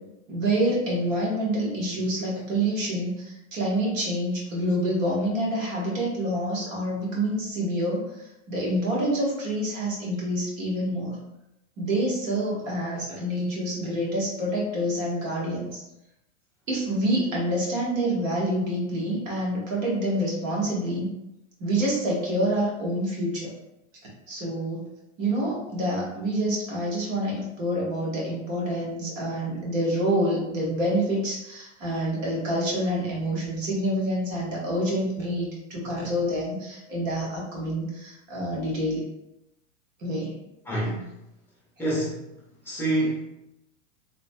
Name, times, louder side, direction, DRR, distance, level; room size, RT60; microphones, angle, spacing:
voice 1, 0.3-8.1 8.5-11.2 11.8-15.8 16.7-21.1 21.6-23.5 24.3-24.8 25.2-39.0 40.0-40.4, right 1 dB, 75° right, -4 dB, 1.4 m, -27 dB
voice 2, 40.7-41.0 41.8-42.2 42.7-43.2, right 1 dB, 5° left, -6 dB, 0.6 m, -26 dB
3.0 x 2.6 x 2.2 m, 0.88 s
hypercardioid pair, 130°, 38 cm